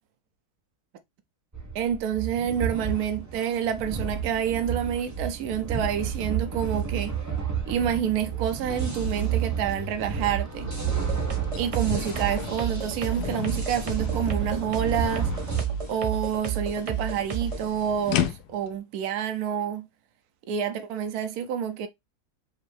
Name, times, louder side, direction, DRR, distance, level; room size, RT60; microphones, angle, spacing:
sound 1, 1.5-15.6, right 6 dB, 15° right, 0.8 m, -31 dB
voice 1, 1.7-7.2 7.7-10.7 11.5-15.3 15.9-19.9 20.5-21.9, right 9 dB, 75° right, 1.1 m, -28 dB
sound 2, 9.9-10.0 10.4-18.8, left 11 dB, 80° left, 1.1 m, -36 dB
sound 3, 10.9-17.7, right 7 dB, 40° right, 0.5 m, -31 dB
5.2 x 2.7 x 3.2 m
omnidirectional pair, 1.7 m